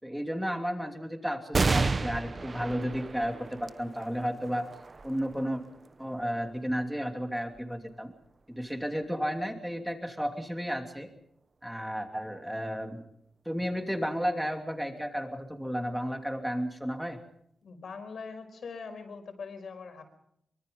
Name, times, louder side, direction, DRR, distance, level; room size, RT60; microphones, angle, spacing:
voice 1, 0.0-4.6 5.0-5.6 6.0-8.1 8.6-11.1 11.6-13.0 13.4-17.2, equal, 5° right, 5 dB, 2.9 m, -33 dB
sound 1, 1.5-8.4 9.0-9.1 10.3-10.8, right 3 dB, 35° right, 0.9 m, -33 dB
voice 2, 17.6-20.0, left 5 dB, 65° left, 6 dB, 5.2 m, -42 dB
24.5 x 24.5 x 5.4 m, 0.73 s
wide cardioid pair, 125°, 0 cm